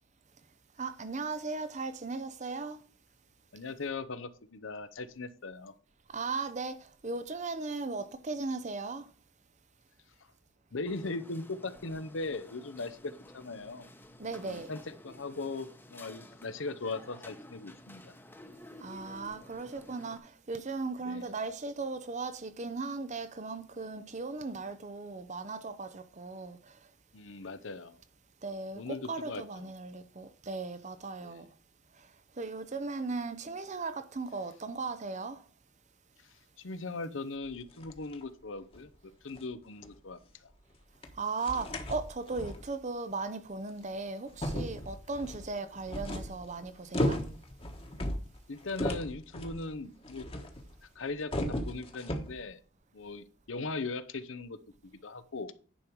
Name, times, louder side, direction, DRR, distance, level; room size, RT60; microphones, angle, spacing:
voice 1, 0.8-2.8 6.1-9.1 14.2-14.7 18.8-26.8 28.4-31.5 32.0-32.1 32.4-35.4 41.2-47.2, right 3 dB, 35° right, 0.7 m, -37 dB
voice 2, 3.5-5.7 10.7-13.9 14.4-18.0 21.0-21.2 27.1-28.0 28.7-29.7 31.2-31.4 36.6-38.9 39.2-40.5 48.5-50.3 51.0-52.6 52.9-55.5, left 3 dB, 70° left, 0.8 m, -39 dB
sound 1, 10.8-20.2, left 1 dB, 10° left, 1.0 m, -52 dB
sound 2, 37.4-38.2 38.7-38.9 39.3-39.4 39.8-39.9 41.0-41.1 41.4-42.7 43.7-43.8 44.3-50.8 51.1-52.4, equal, 30° left, 1.3 m, -36 dB
10.0 x 5.2 x 4.6 m
head